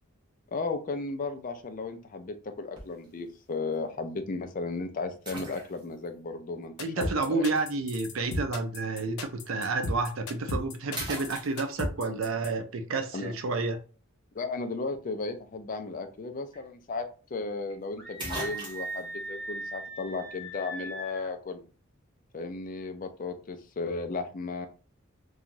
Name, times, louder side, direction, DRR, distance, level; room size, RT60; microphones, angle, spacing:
voice 1, 0.5-7.4 13.1-13.3 14.3-17.0 17.3-21.6 22.3-24.7, left 3 dB, 40° left, 6 dB, 0.4 m, -35 dB
sound 1, 2.8-3.1 3.7-3.8 5.2-6.1 7.5-7.7 9.8-10.0 10.4-10.6 10.9-12.0 16.1-16.2 16.5-16.6 17.7-17.8 18.2-19.0, right 1 dB, 20° right, 0.9 m, -39 dB
sound 2, 6.8-12.5, left 1 dB, 90° left, 0.6 m, -34 dB
voice 2, 6.8-13.8, right 3 dB, 70° right, 7 dB, 0.5 m, -30 dB
Screaming, 18.0-21.3, right 1 dB, 10° left, 1.3 m, -39 dB
2.9 x 2.3 x 2.5 m, 0.37 s
head